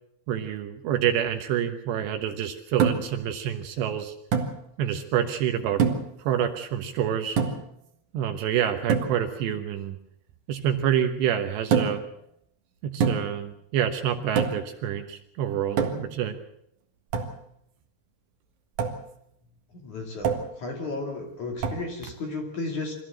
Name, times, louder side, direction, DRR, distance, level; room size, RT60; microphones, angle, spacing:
voice 1, 0.3-4.1 4.8-5.8 6.2-7.4 8.1-10.0 10.5-12.0 12.8-16.4, right 9 dB, 70° right, 6 dB, 3.1 m, -27 dB
sound 1, 2.8-3.2 4.3-4.6 5.8-6.2 7.4-7.7 8.9-9.2 11.7-12.1 13.0-13.4 14.4-14.7 15.8-16.2 17.1-17.4 18.8-19.0 20.2-20.6 21.6-21.9, right 6 dB, 55° right, 2.3 m, -25 dB
voice 2, 19.7-23.0, left 3 dB, 45° left, 2 dB, 3.6 m, -34 dB
24.5 x 15.0 x 7.7 m, 0.72 s
omnidirectional pair, 5.7 m